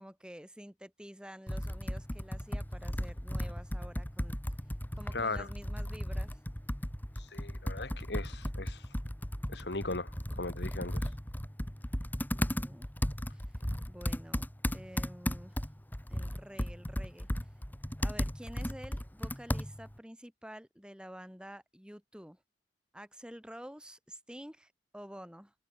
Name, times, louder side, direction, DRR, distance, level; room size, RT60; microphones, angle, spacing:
voice 1, 0.0-4.4 4.9-6.4 12.3-12.9 13.3-13.4 13.9-14.5 14.7-15.6 16.1-17.5 18.0-22.4 22.9-25.5, equal, 5° right, 7.3 m, -49 dB
Computer keyboard, 1.5-20.0, equal, 10° left, 1.6 m, -36 dB
voice 2, 5.1-5.5 7.2-8.8 9.5-11.1, left 3 dB, 75° left, 2.3 m, -38 dB
head